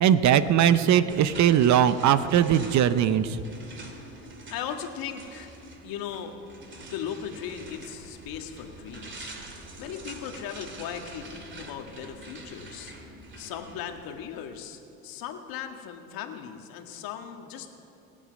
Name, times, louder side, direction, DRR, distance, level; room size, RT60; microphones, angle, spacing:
voice 1, 0.0-3.4, right 9 dB, 45° right, 14 dB, 0.8 m, -20 dB
sound 1, 1.1-14.6, right 2 dB, 30° right, 2.5 m, -45 dB
voice 2, 4.5-5.5 5.8-6.3 6.8-12.9 13.4-17.7, left 8 dB, 60° left, 5 dB, 1.8 m, -38 dB
26.0 x 8.8 x 5.2 m, 2.7 s
supercardioid pair, 85°, 40 cm